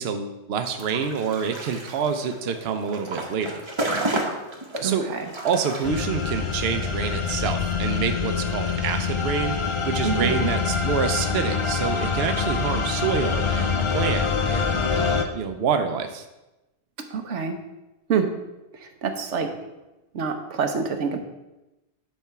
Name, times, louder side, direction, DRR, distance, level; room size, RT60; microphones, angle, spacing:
voice 1, 0.0-3.6 4.8-5.1 5.4-9.6 9.9-16.2, right 6 dB, 65° right, 7 dB, 0.8 m, -27 dB
sound 1, 0.8-5.9, right 1 dB, 25° right, 0.9 m, -31 dB
voice 2, 4.8-5.3 10.0-10.5 17.1-17.6 18.1-18.3 18.8-19.5 20.1-21.2, right 6 dB, 85° right, 6 dB, 1.2 m, -26 dB
sound 2, 5.8-15.2, left 5 dB, 35° left, 0.5 m, -25 dB
10.0 x 3.4 x 5.7 m, 0.99 s
omnidirectional pair, 1.2 m